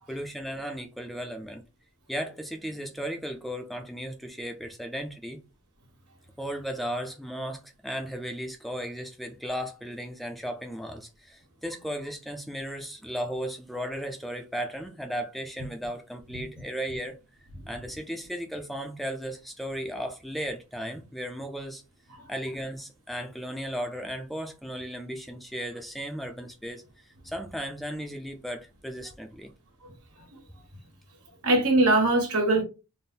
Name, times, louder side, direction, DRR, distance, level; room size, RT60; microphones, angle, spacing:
voice 1, 0.1-1.6 2.1-5.4 6.4-17.1 17.7-21.8 22.3-26.8 27.2-29.5, equal, ahead, 0.4 m, -35 dB
voice 2, 29.8-30.3 31.4-32.6, right 2 dB, 85° right, 1.5 m, -23 dB
3.4 x 2.1 x 4.2 m
head